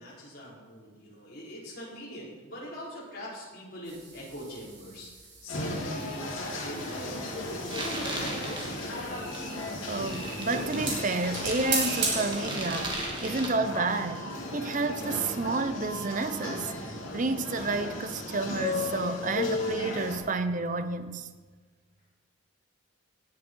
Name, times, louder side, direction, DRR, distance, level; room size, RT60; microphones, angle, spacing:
voice 1, 0.0-5.1 5.4-7.2 7.7-9.3, equal, 45° left, 4.4 m, -42 dB
sound 1, 3.8-13.2, right 3 dB, 55° right, 4.2 m, -38 dB
sound 2, 5.5-20.2, left 2 dB, 70° left, 2.9 m, -35 dB
sound 3, 7.7-13.5, right 2 dB, 20° right, 1.8 m, -38 dB
voice 2, 9.8-16.7 17.1-21.3, right 3 dB, 40° right, 0.7 m, -30 dB
18.0 x 7.1 x 4.6 m
head